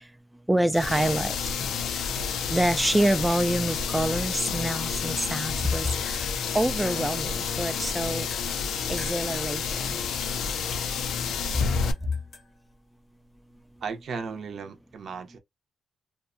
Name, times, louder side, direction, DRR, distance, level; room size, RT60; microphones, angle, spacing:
voice 1, 0.5-1.4 2.5-6.3 6.5-8.3 8.9-10.0, right 1 dB, 10° right, 0.3 m, -26 dB
sound 1, 0.7-11.9, left 6 dB, 90° left, 0.4 m, -30 dB
sound 2, 8.2-14.5, left 3 dB, 45° left, 0.6 m, -51 dB
voice 2, 13.8-15.4, right 5 dB, 60° right, 0.6 m, -35 dB
2.7 x 2.1 x 2.5 m
cardioid pair, 110°, 0 cm